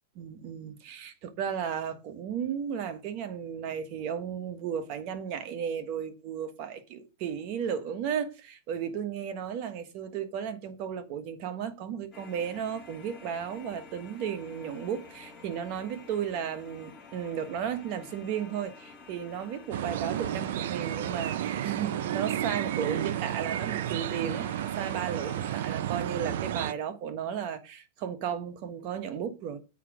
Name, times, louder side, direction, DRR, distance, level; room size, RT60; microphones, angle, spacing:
voice 1, 0.1-29.6, right 8 dB, 40° right, 1.2 m, -34 dB
sound 1, 12.1-25.8, left 4 dB, 10° left, 3.1 m, -50 dB
sound 2, 19.7-26.7, right 11 dB, 65° right, 0.5 m, -32 dB
8.4 x 4.7 x 6.1 m
supercardioid pair, 150°, 0 cm